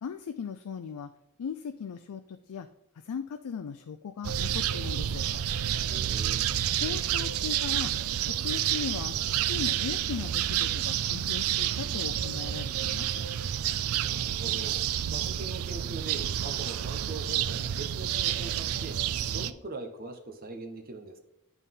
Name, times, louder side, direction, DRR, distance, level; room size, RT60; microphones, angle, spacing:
voice 1, 0.0-1.1 1.4-2.7 3.0-5.3 6.8-7.9 8.3-13.2, left 6 dB, 85° left, 9 dB, 0.4 m, -38 dB
sound 1, 4.2-19.5, right 11 dB, 75° right, 0.4 m, -29 dB
voice 2, 5.9-6.4 13.9-19.0 19.3-21.2, right 3 dB, 40° right, 4 dB, 1.0 m, -42 dB
11.0 x 4.1 x 3.6 m, 0.84 s
head